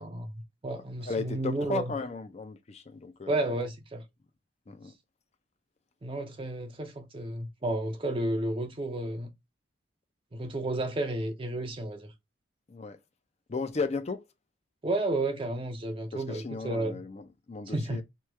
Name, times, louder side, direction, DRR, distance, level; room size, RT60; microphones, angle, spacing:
voice 1, 0.0-1.9 3.3-4.0 6.0-9.3 10.3-12.1 14.8-17.0 17.7-18.0, right 1 dB, 25° right, 0.5 m, -32 dB
voice 2, 1.1-3.4 4.7-4.9 12.7-13.0 13.5-14.3 16.1-18.0, left 3 dB, 35° left, 0.4 m, -35 dB
3.0 x 2.3 x 3.2 m
head